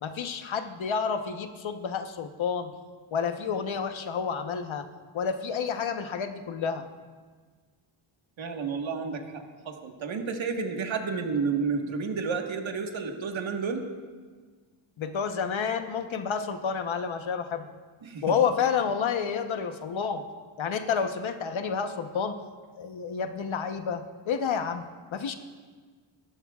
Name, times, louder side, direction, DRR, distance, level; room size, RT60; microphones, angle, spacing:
voice 1, 0.0-2.7 3.1-4.9 5.1-6.9 15.0-17.7 18.2-20.2 20.6-22.3 22.8-24.8 25.1-25.3, left 6 dB, 70° left, 7 dB, 1.1 m, -29 dB
voice 2, 8.4-13.9 18.0-18.4, right 5 dB, 65° right, 3 dB, 1.6 m, -31 dB
25.0 x 13.5 x 2.4 m, 1.5 s
cardioid pair, 75°, 49 cm